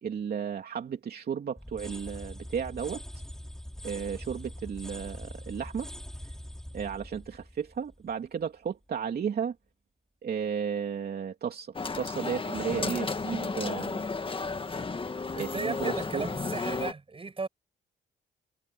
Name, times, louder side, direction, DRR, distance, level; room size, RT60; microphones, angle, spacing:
voice 1, 0.0-3.0 3.8-5.9 6.7-9.5 10.2-14.0 15.3-16.3, right 7 dB, 50° right, 3.1 m, -34 dB
sound 1, 1.6-8.4, equal, 5° left, 3.1 m, -43 dB
sound 2, 11.7-16.9, left 4 dB, 25° left, 1.8 m, -33 dB
voice 2, 15.3-17.5, right 4 dB, 25° right, 7.3 m, -35 dB
cardioid pair, 90°, 20 cm